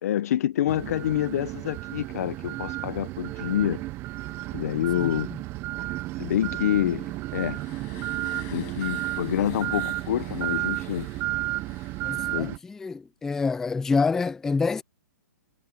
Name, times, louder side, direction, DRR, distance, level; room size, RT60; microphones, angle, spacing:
voice 1, 0.0-3.8 4.5-5.3 5.9-8.0 8.5-11.1 12.3-12.5, left 12 dB, 55° left, 0.9 m, -27 dB
sound 1, 0.7-12.6, right 17 dB, 25° right, 0.8 m, -32 dB
voice 2, 5.0-5.4 12.0-14.8, left 4 dB, 5° left, 0.3 m, -27 dB
sound 2, 6.8-12.6, left 32 dB, 30° left, 5.6 m, -50 dB
hypercardioid pair, 155°, 10 cm